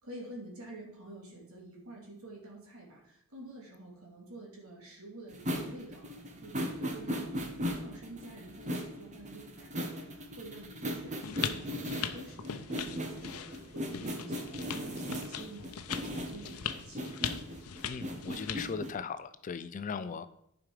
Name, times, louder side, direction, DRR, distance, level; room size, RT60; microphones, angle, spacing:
voice 1, 0.0-17.2, right 2 dB, 70° right, -2 dB, 2.8 m, -49 dB
sound 1, 5.3-18.9, equal, 35° right, 1.1 m, -38 dB
sound 2, 11.2-18.7, left 8 dB, 80° left, 0.7 m, -40 dB
voice 2, 17.9-20.3, left 5 dB, 35° left, 12 dB, 0.4 m, -38 dB
11.0 x 5.0 x 4.8 m, 0.79 s
head